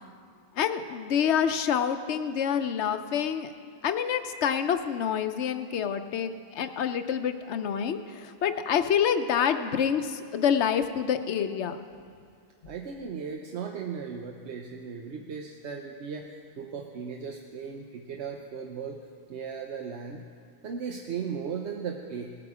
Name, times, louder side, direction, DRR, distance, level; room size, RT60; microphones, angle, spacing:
voice 1, 0.5-3.5 3.8-11.8, left 8 dB, 90° left, 9 dB, 1.0 m, -27 dB
voice 2, 12.6-19.0 19.3-20.2 20.6-22.4, right 6 dB, 80° right, 2 dB, 1.1 m, -37 dB
18.5 x 8.7 x 4.9 m, 2.3 s
omnidirectional pair, 1.1 m